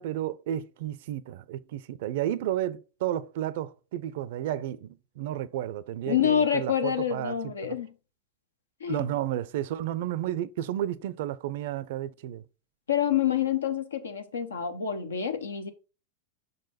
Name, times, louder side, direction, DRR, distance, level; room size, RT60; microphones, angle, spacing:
voice 1, 0.0-7.5 8.9-12.4, right 12 dB, 60° right, 0.4 m, -32 dB
voice 2, 6.1-7.9 8.8-9.1 12.9-15.7, left 9 dB, 80° left, 0.8 m, -27 dB
6.2 x 4.1 x 4.1 m
hypercardioid pair, 95°, 0 cm